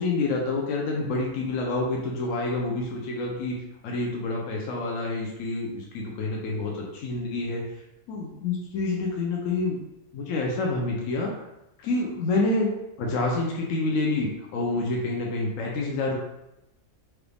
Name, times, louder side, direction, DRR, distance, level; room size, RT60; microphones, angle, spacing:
voice 1, 0.0-3.6 3.8-7.6 8.1-9.8 10.1-11.5 11.8-12.7 13.0-16.2, left 2 dB, 70° left, -1 dB, 1.0 m, -28 dB
4.6 x 2.6 x 3.3 m, 0.89 s
omnidirectional pair, 1.5 m